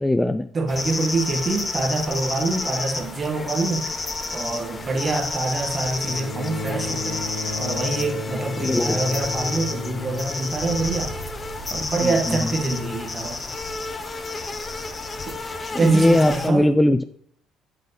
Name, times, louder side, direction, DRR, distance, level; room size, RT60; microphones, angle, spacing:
voice 1, 0.0-0.5 8.6-9.0 12.0-12.5 15.7-17.0, left 1 dB, 10° left, 0.3 m, -20 dB
voice 2, 0.5-3.9 4.3-7.2 7.6-11.2 11.7-13.4 15.3-15.4 15.8-16.7, right 3 dB, 35° right, 1.4 m, -25 dB
sound 1, 0.7-16.5, left 3 dB, 30° left, 0.7 m, -30 dB
Bowed string instrument, 6.1-11.5 12.6-12.7, left 3 dB, 70° left, 0.8 m, -34 dB
Wind, 10.5-16.0, right 4 dB, 85° right, 1.0 m, -42 dB
7.8 x 3.7 x 3.9 m
supercardioid pair, 85°, 0 cm